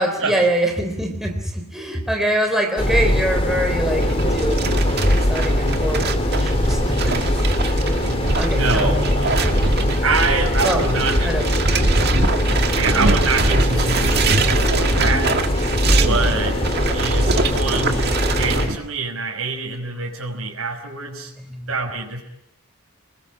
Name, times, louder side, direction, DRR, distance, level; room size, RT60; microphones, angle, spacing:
voice 1, 0.0-4.8 5.1-7.3 7.6-7.8 8.3-8.9 10.6-10.8 11.2-11.4 21.5-21.7, right 1 dB, ahead, 3 dB, 3.5 m, -24 dB
sound 1, 2.8-18.7, left 1 dB, 25° left, 3.1 m, -21 dB
sound 2, 4.0-18.8, right 3 dB, 45° right, 1.9 m, -23 dB
voice 2, 8.0-9.8 10.0-11.4 12.8-15.3 16.0-16.6 16.9-18.1 18.3-21.3 21.7-22.2, right 3 dB, 70° right, 0 dB, 5.5 m, -25 dB
27.0 x 21.0 x 8.8 m, 0.81 s
head